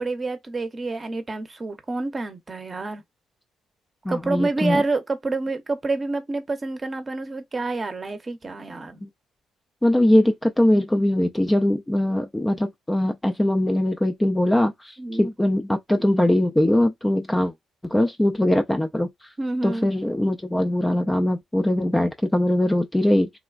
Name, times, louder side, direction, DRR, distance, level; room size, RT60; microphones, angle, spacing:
voice 1, 0.0-3.0 4.1-9.0 15.0-15.3 19.4-19.9, right 3 dB, 30° right, 0.7 m, -28 dB
voice 2, 4.0-4.8 9.0-9.1 9.8-17.5 17.8-19.3 19.6-23.3, left 1 dB, 10° left, 0.4 m, -21 dB
3.0 x 2.1 x 2.4 m
cardioid pair, 90°, 0 cm